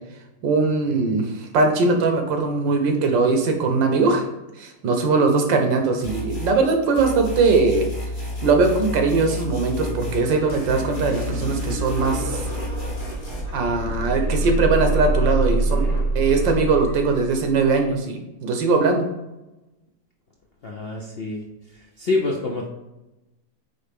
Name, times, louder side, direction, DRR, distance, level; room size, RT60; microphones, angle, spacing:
voice 1, 0.4-1.3 1.5-4.2 4.6-7.8 8.4-12.4 13.5-15.8 16.1-19.1, right 4 dB, 90° right, 4 dB, 1.7 m, -20 dB
sound 1, 6.0-6.6 7.0-10.2 10.5-13.4, left 1 dB, 30° left, 1.6 m, -31 dB
sound 2, 9.8-17.8, right 2 dB, 65° right, 2.5 m, -26 dB
voice 2, 20.6-21.4 21.7-22.7, left 3 dB, 55° left, 0 dB, 0.6 m, -26 dB
8.8 x 3.3 x 3.6 m, 0.99 s
omnidirectional pair, 1.9 m